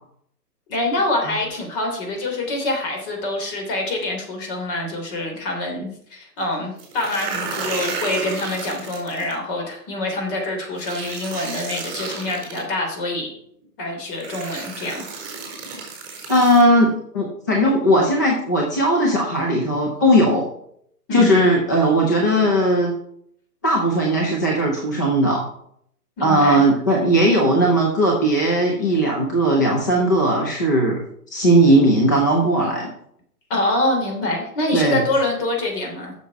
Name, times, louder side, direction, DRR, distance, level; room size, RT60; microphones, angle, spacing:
voice 1, 0.7-13.3 13.8-15.0 21.1-21.4 26.2-26.6 33.5-36.1, left 2 dB, 35° left, 1 dB, 3.2 m, -25 dB
sound 1, 6.8-9.3 10.8-12.6 13.6-13.7 14.2-16.6, right 4 dB, 30° right, 4.6 m, -32 dB
voice 2, 16.3-20.4 21.1-22.9 23.6-25.4 26.2-31.0 31.3-32.9 34.7-35.0, right 1 dB, 15° left, -2 dB, 0.4 m, -18 dB
7.6 x 6.7 x 5.9 m, 0.70 s
hypercardioid pair, 145°, 47 cm